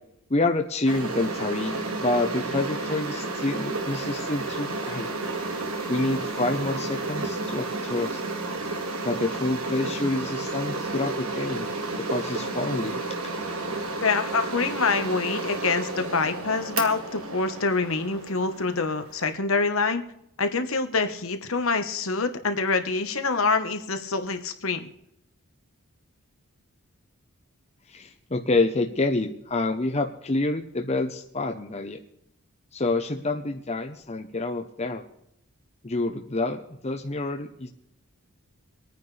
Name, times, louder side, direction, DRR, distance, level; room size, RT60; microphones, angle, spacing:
voice 1, 0.3-1.7 2.0-5.1 5.9-8.2 9.0-11.7 12.0-13.0 27.9-32.0 32.7-35.0 35.8-37.7, left 2 dB, 30° left, 4 dB, 0.8 m, -27 dB
sound 1, 0.9-19.3, right 3 dB, 70° right, 1.9 m, -32 dB
voice 2, 14.0-20.0 20.4-24.8, left 4 dB, 65° left, 8 dB, 1.3 m, -26 dB
25.5 x 9.5 x 3.4 m, 0.77 s
head